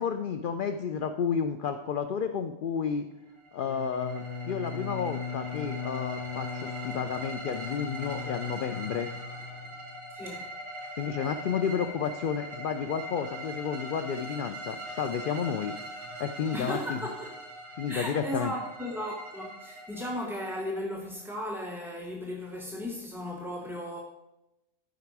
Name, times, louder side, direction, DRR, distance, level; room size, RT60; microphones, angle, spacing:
voice 1, 0.0-3.1 3.5-9.1 11.0-15.8 16.2-17.0 17.8-18.5, left 7 dB, 65° left, 0.5 m, -31 dB
sound 1, 3.4-21.2, right 1 dB, 75° right, 3.1 m, -42 dB
Bowed string instrument, 3.6-10.3, left 6 dB, 40° left, 0.9 m, -39 dB
voice 2, 10.1-10.4 16.5-17.4 17.9-24.0, left 1 dB, 5° right, 0.4 m, -36 dB
12.0 x 5.1 x 4.7 m
omnidirectional pair, 1.4 m